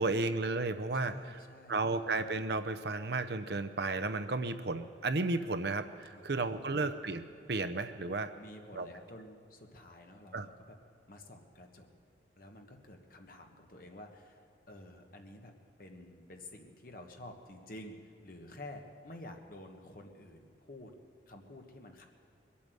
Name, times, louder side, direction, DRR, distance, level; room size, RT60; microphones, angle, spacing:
voice 1, 0.0-1.4 1.7-7.2 7.5-8.3 8.8-8.9 10.3-10.5, right 3 dB, 60° right, 9 dB, 0.7 m, -33 dB
voice 2, 1.0-1.9 6.1-6.9 8.4-10.8 11.1-11.9 12.4-15.5 15.8-20.9 21.3-22.1, left 1 dB, 50° left, 3 dB, 1.4 m, -50 dB
21.5 x 8.6 x 7.8 m, 2.5 s
head